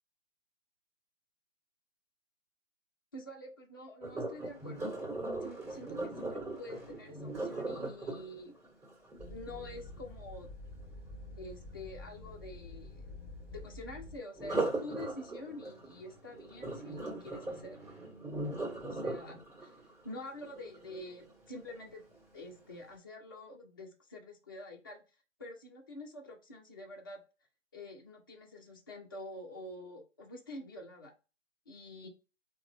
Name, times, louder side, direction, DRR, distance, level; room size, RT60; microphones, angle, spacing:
voice 1, 3.1-5.1 5.4-8.5 9.3-10.5 11.4-17.8 18.8-19.3 19.6-19.7 20.0-22.0 22.3-25.0 25.4-27.2 27.7-31.1 31.7-32.1, left 1 dB, 20° left, -1 dB, 0.3 m, -47 dB
Sink (filling or washing), 4.0-10.0 14.3-21.4 21.9-22.2 22.7-22.8, right 2 dB, 15° right, 1.6 m, -39 dB
sound 1, 9.2-14.2, left 2 dB, ahead, 0.8 m, -48 dB
3.8 x 2.1 x 3.2 m, 0.32 s
figure-of-eight pair, 140°, 36 cm